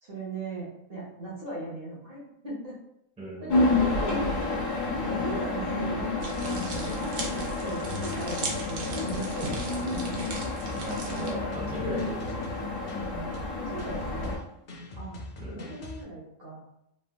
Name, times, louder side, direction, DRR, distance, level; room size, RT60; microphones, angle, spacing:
voice 1, 0.0-2.7 3.4-4.3 4.6-4.8 5.1-6.3 6.6-7.2 7.6-10.0 13.6-14.3 15.0-16.6, right 2 dB, 45° right, -5 dB, 1.0 m, -39 dB
voice 2, 3.2-3.7 10.8-12.5 15.4-15.7, right 1 dB, 5° right, -5 dB, 0.5 m, -38 dB
sound 1, 3.5-14.4, left 2 dB, 65° left, 1.3 m, -30 dB
sound 2, 6.2-11.3, right 3 dB, 80° right, 1.1 m, -38 dB
sound 3, 8.8-16.0, left 2 dB, 85° left, 0.3 m, -42 dB
3.4 x 2.4 x 2.2 m, 0.79 s
omnidirectional pair, 1.5 m